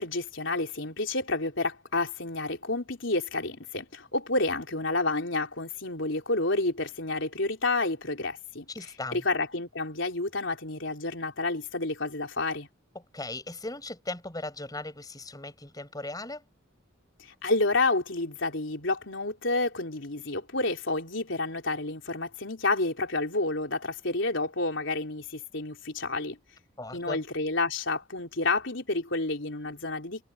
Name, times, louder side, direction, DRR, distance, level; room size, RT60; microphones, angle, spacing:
voice 1, 0.0-8.7 9.1-12.7 17.2-26.4 26.9-30.2, left 2 dB, 65° left, 4.0 m, -29 dB
voice 2, 8.7-9.2 13.0-16.5 26.8-27.2, left 2 dB, 20° left, 5.3 m, -38 dB
head